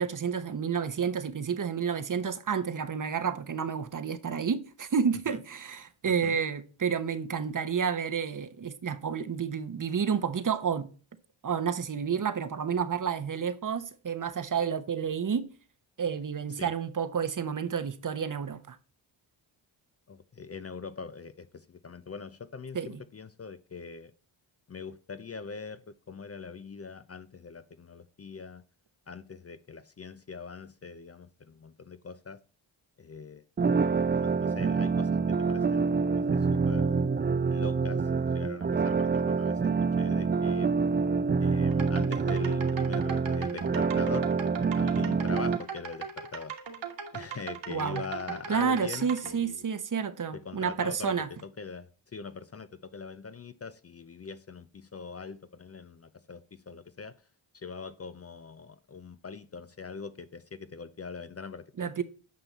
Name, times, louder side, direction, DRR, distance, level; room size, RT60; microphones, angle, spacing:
voice 1, 0.0-10.9 11.4-15.5 16.0-18.8 22.7-23.0 47.7-48.0 48.5-51.3 61.8-62.0, right 6 dB, 40° right, 1.0 m, -30 dB
voice 2, 20.1-24.1 24.7-28.6 29.1-32.4 33.0-33.4 34.1-37.0 37.5-40.7 41.4-44.3 44.7-46.5 47.1-49.7 50.3-57.1 57.5-62.0, left 5 dB, 30° left, 0.6 m, -42 dB
sound 1, 33.6-45.6, right 5 dB, 20° right, 0.4 m, -26 dB
sound 2, 41.7-49.3, right 6 dB, 60° right, 1.9 m, -39 dB
9.3 x 5.4 x 4.1 m
cardioid pair, 65°, 48 cm